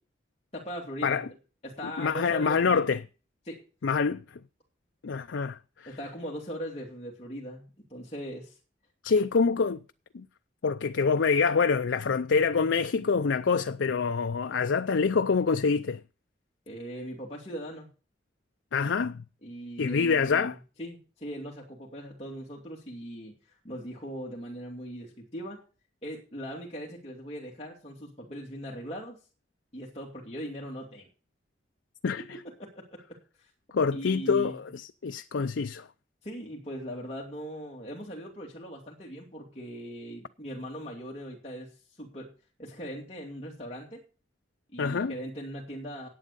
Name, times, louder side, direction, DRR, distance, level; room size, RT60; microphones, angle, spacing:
voice 1, 0.5-1.4 1.6-2.8 3.4-3.6 5.9-8.6 16.7-17.9 19.4-25.6 26.0-29.2 29.7-31.1 32.0-32.2 32.6-32.7 33.4-33.5 33.9-34.6 36.2-42.3 42.6-44.0 44.7-46.1, equal, 35° left, 2.5 m, -40 dB
voice 2, 2.0-3.0 3.8-4.2 5.0-5.9 9.0-9.8 10.1-10.2 10.6-16.0 18.7-19.2 19.8-20.6 32.0-32.2 33.7-35.9 44.8-45.1, left 5 dB, 85° left, 0.5 m, -26 dB
11.0 x 8.5 x 6.8 m
head